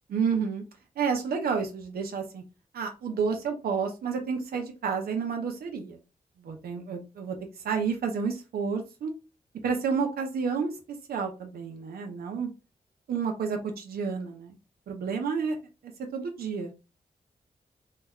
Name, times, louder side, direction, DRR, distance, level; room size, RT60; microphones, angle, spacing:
voice 1, 0.1-0.6 1.0-2.4 2.7-6.0 6.4-7.4 7.6-9.1 9.6-10.8 11.1-12.5 13.1-14.6 14.9-15.6 16.1-16.7, right 5 dB, 90° right, 3 dB, 0.5 m, -30 dB
2.2 x 2.1 x 3.4 m, 0.30 s
cardioid pair, 55°, 15 cm